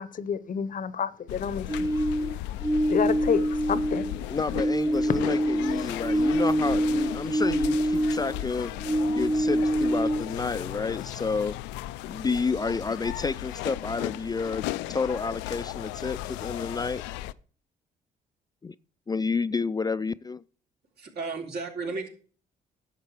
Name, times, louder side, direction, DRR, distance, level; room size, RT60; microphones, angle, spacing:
voice 1, 0.0-1.9 2.9-4.1, left 7 dB, 50° left, 0.8 m, -29 dB
sound 1, 1.3-17.3, left 15 dB, 85° left, 0.4 m, -36 dB
sound 2, 1.7-4.2 4.5-8.4 8.8-10.4, right 1 dB, 20° right, 0.7 m, -26 dB
voice 2, 4.3-8.7 9.1-11.5 12.1-17.0 18.6-18.7 19.1-20.4, left 4 dB, 20° left, 0.4 m, -30 dB
voice 3, 21.0-22.1, right 4 dB, 65° right, 3.4 m, -33 dB
11.0 x 7.5 x 4.7 m
supercardioid pair, 60°, 18 cm